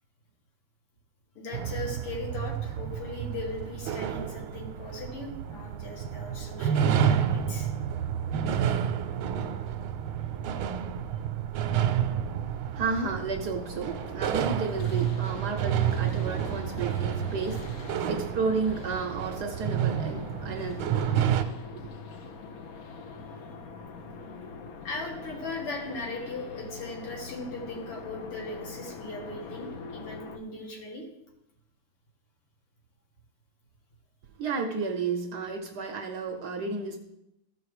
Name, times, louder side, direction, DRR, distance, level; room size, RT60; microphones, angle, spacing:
voice 1, 1.4-7.7 23.4-23.6 24.8-31.1, left 2 dB, 90° left, 3.0 m, -38 dB
sound 1, 1.5-21.4, right 9 dB, 80° right, 1.5 m, -30 dB
voice 2, 12.7-21.0 21.3-21.9 34.4-37.0, right 4 dB, 65° right, 1.1 m, -32 dB
sound 2, 13.5-30.4, left 4 dB, 60° left, 0.9 m, -43 dB
14.0 x 5.0 x 4.8 m
omnidirectional pair, 2.4 m